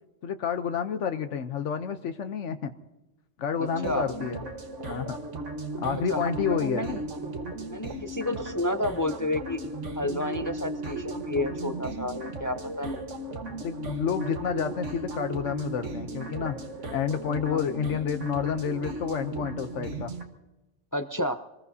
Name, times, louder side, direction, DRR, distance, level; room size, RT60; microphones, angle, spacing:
voice 1, 0.2-2.7 3.4-4.4 4.9-5.2 5.8-6.9 13.4-16.6 16.9-20.1, left 7 dB, 80° left, 8 dB, 1.1 m, -29 dB
voice 2, 3.6-4.1 6.1-7.0 7.7-9.6 10.0-13.0 17.4-17.6 20.9-21.3, left 1 dB, 30° left, 9 dB, 0.3 m, -31 dB
sound 1, 3.6-20.2, right 2 dB, 80° right, 1.7 m, -36 dB
25.5 x 20.5 x 2.7 m, 1.0 s
omnidirectional pair, 1.2 m